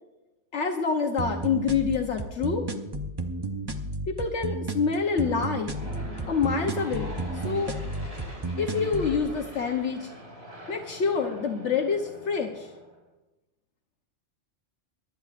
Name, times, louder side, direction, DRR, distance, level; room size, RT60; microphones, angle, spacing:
voice 1, 0.5-2.6 4.1-5.8 6.3-7.1 7.4-7.7 8.6-10.1 10.7-12.7, left 5 dB, 70° left, 3 dB, 1.2 m, -27 dB
sound 1, 1.2-9.2, right 2 dB, 25° right, 0.6 m, -33 dB
Aircraft / Engine, 5.0-13.0, equal, 55° right, 4.8 m, -43 dB
23.5 x 11.5 x 2.5 m, 1.0 s
omnidirectional pair, 1.3 m